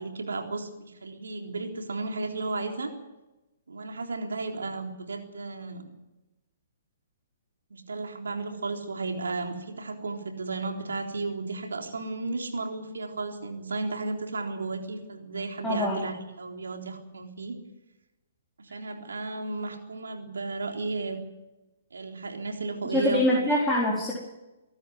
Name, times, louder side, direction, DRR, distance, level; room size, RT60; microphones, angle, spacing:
voice 1, 0.0-2.9 3.7-5.9 7.7-17.6 18.6-21.2 21.9-23.6, right 3 dB, 85° right, 3 dB, 3.7 m, -34 dB
voice 2, 15.6-16.0 22.9-24.1, left 1 dB, ahead, -7 dB, 4.5 m, -24 dB
25.0 x 12.5 x 9.3 m, 1.0 s
hypercardioid pair, 135°, 0 cm